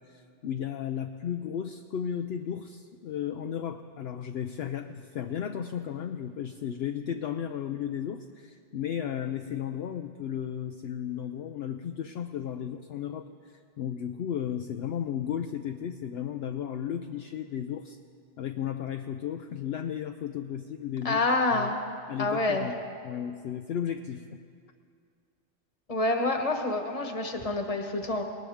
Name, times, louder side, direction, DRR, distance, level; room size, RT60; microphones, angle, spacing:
voice 1, 0.0-18.0 18.4-21.2 21.5-21.7 22.1-24.4, left 9 dB, 65° left, 6 dB, 0.8 m, -34 dB
voice 2, 21.0-21.8 22.2-22.7 25.9-28.2, left 2 dB, 30° left, 4 dB, 1.3 m, -27 dB
19.0 x 19.0 x 3.5 m, 2.2 s
omnidirectional pair, 1.2 m